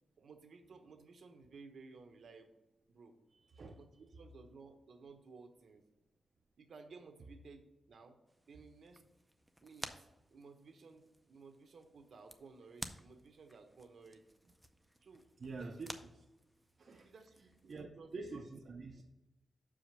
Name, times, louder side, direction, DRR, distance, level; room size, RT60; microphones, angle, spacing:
voice 1, 0.2-2.6 2.9-3.2 3.7-5.8 6.6-8.2 8.5-9.0 9.6-14.3 15.0-15.8 17.0-18.4, right 4 dB, 70° right, 6 dB, 0.9 m, -57 dB
sound 1, 8.3-17.9, equal, 5° right, 0.5 m, -54 dB
voice 2, 15.4-15.9 16.8-17.1 17.7-19.0, right 3 dB, 55° right, 1 dB, 0.6 m, -46 dB
6.2 x 4.9 x 6.1 m, 0.98 s
wide cardioid pair, 145°, 0 cm